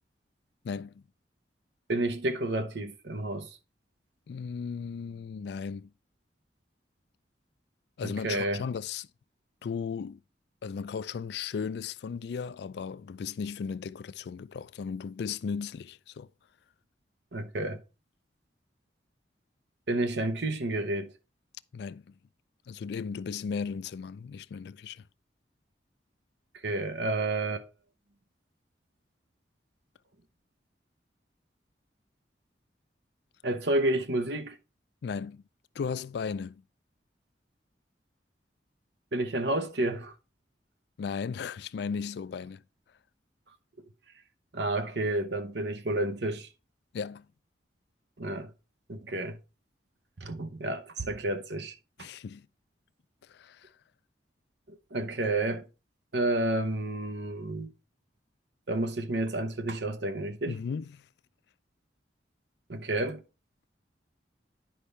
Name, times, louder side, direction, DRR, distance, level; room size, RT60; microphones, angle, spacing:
voice 1, 0.6-1.0 4.3-5.9 8.0-9.1 9.6-10.2 10.6-16.3 21.7-22.1 22.7-25.1 35.0-35.4 35.7-36.6 41.0-42.6 46.9-47.3 52.0-52.5 53.2-53.7 60.5-61.1, left 6 dB, 60° left, 0.3 m, -36 dB
voice 2, 1.9-3.5 8.0-8.6 17.3-17.8 19.9-21.1 26.6-27.6 33.4-34.6 39.1-40.1 44.5-46.5 48.2-48.5 48.9-49.4 50.2-51.7 54.9-55.6 56.1-57.7 58.7-60.6 62.7-63.2, right 2 dB, 65° right, 0.9 m, -30 dB
10.0 x 5.4 x 3.3 m
head